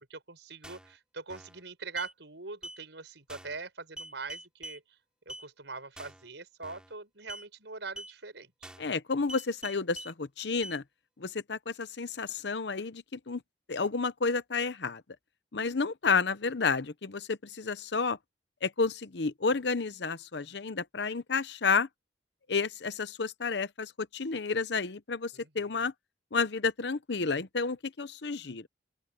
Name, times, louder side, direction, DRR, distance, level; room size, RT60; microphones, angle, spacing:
voice 1, 0.1-4.8 5.3-8.7 25.3-25.8, right 4 dB, 75° right, 5.4 m, -42 dB
sound 1, 0.6-0.9 1.3-1.6 2.0-2.1 2.6-2.8 3.3-3.6 4.0-4.8 5.3-5.5 6.0-6.3 6.6-6.9 7.3-7.5 8.0-8.1 8.6-8.9 9.3-10.1 10.6-10.8, right 1 dB, 5° right, 3.3 m, -44 dB
voice 2, 8.8-10.8 11.2-13.4 13.7-15.0 15.5-18.2 18.6-21.9 22.5-25.9 26.3-28.7, left 4 dB, 70° left, 0.8 m, -31 dB
open air
head